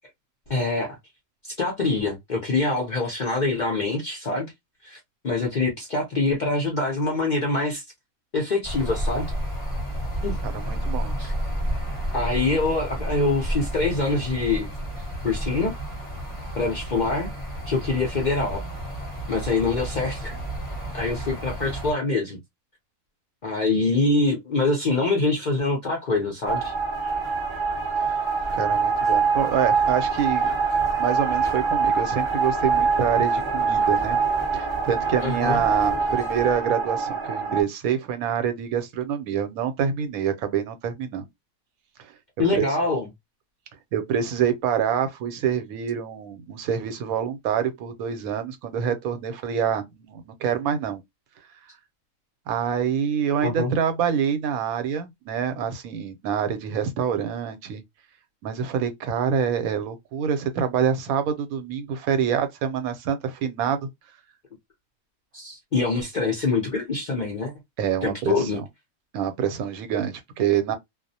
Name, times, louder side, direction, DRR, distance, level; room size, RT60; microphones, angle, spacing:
voice 1, 0.5-1.0 1.4-4.5 4.8-5.0 5.2-7.8 8.3-9.3 10.2-10.4 11.2-11.3 12.1-14.7 15.0-15.7 16.5-17.3 17.7-18.6 19.3-20.4 20.9-22.4 23.4-26.7 35.2-35.6 42.4-43.1 53.4-53.7 65.3-67.5 68.0-68.6, left 3 dB, 55° left, 0.5 m, -25 dB
sound 1, 8.6-21.9, equal, 10° left, 0.7 m, -31 dB
voice 2, 10.4-11.1 28.5-30.5 31.0-34.2 34.5-41.3 42.5-42.7 43.9-51.0 52.5-57.8 58.4-63.9 67.8-68.6 69.1-70.7, right 8 dB, 80° right, 1.0 m, -26 dB
sound 2, 26.5-37.6, right 5 dB, 25° right, 0.7 m, -24 dB
2.4 x 2.0 x 2.6 m
omnidirectional pair, 1.5 m